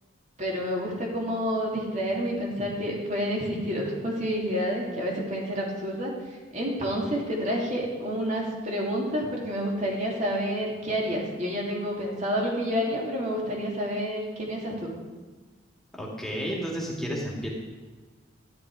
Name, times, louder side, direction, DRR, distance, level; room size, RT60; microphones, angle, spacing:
voice 1, 0.4-6.1 6.5-14.9, equal, 40° right, -2 dB, 3.1 m, -29 dB
voice 2, 15.9-17.5, equal, ahead, -3 dB, 2.6 m, -32 dB
14.0 x 11.0 x 5.0 m, 1.3 s
head